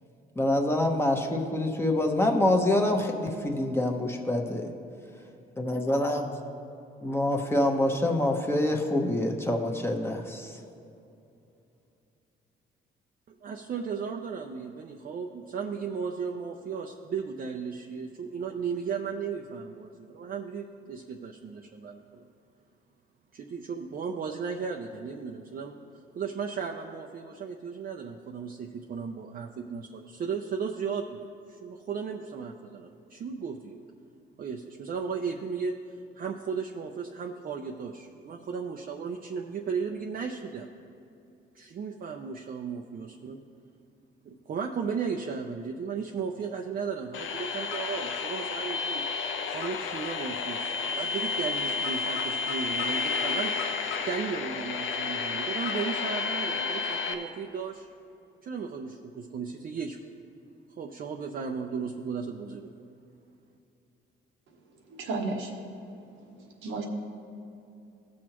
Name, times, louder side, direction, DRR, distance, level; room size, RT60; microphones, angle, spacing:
voice 1, 0.4-4.7 5.6-6.3 7.0-10.5, left 1 dB, 10° left, 1 dB, 1.1 m, -26 dB
voice 2, 13.3-22.2 23.3-25.8 26.1-31.2 31.5-33.8 34.4-35.8 36.2-40.7 41.5-43.4 44.2-49.0 49.5-53.5 54.0-57.9 58.4-60.0 60.8-62.7, right 6 dB, 50° right, 1 dB, 0.6 m, -35 dB
sound 1, 47.1-57.1, left 4 dB, 85° left, 0.8 m, -31 dB
voice 3, 64.9-65.5 66.6-66.9, right 3 dB, 85° right, 1 dB, 1.3 m, -32 dB
16.5 x 6.3 x 3.0 m, 2.7 s
cardioid pair, 90°, 20 cm